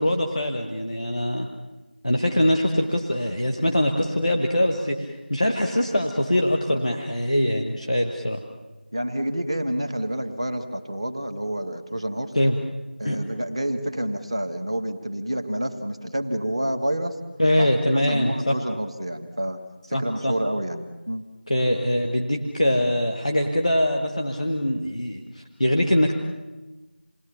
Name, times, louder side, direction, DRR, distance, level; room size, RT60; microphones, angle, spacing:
voice 1, 0.0-1.5 2.0-8.4 12.3-12.5 13.0-13.2 17.4-18.5 19.9-20.3 21.5-26.1, left 1 dB, 5° left, 2 dB, 0.7 m, -23 dB
voice 2, 8.9-12.3 13.0-17.2 17.6-19.6 19.9-21.3, right 1 dB, 30° right, 7 dB, 1.5 m, -28 dB
28.0 x 19.5 x 7.1 m, 1.1 s
figure-of-eight pair, 175°, 6 cm